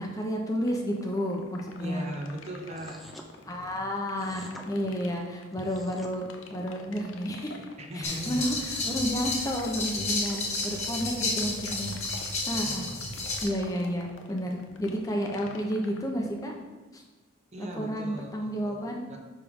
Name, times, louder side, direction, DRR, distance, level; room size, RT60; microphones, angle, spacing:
voice 1, 0.0-2.1 3.4-6.2 6.5-7.6 7.9-12.0 12.5-12.9 13.4-16.5 16.9-17.0 17.6-19.0, equal, 15° left, 1 dB, 0.7 m, -31 dB
sound 1, 0.6-16.6, left 4 dB, 75° left, 0.7 m, -47 dB
voice 2, 1.8-3.0 3.4-4.0 7.8-8.4 12.6-13.0 17.5-18.8 19.1-19.2, right 1 dB, 35° right, 2 dB, 0.7 m, -39 dB
sound 2, 2.7-3.3 4.2-4.7 5.5-6.1, equal, ahead, 0.4 m, -47 dB
sound 3, 8.0-13.4, left 3 dB, 35° left, 1.3 m, -32 dB
9.6 x 3.3 x 3.6 m, 1.3 s
head